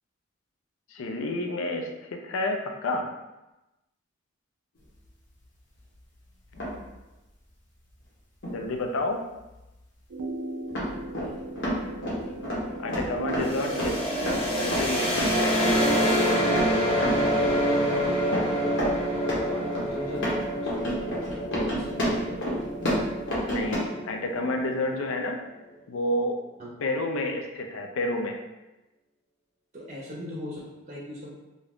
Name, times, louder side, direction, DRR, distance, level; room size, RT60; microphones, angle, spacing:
voice 1, 0.9-3.1 8.5-9.2 12.8-14.1 14.6-15.6 23.5-25.4 25.9-26.4 26.8-28.4, left 2 dB, 85° left, 3 dB, 0.4 m, -30 dB
sound 1, 6.5-6.9 8.4-8.6 9.6-9.7 10.7-23.8, equal, 60° left, 0.8 m, -31 dB
sound 2, 10.1-15.1, right 1 dB, 90° right, 0.4 m, -37 dB
sound 3, 13.4-25.1, equal, 30° left, 0.8 m, -27 dB
voice 2, 19.4-21.2 21.6-22.5 26.6-26.7 29.7-31.3, equal, 35° right, -5 dB, 0.6 m, -40 dB
2.6 x 2.4 x 3.4 m, 1.0 s
head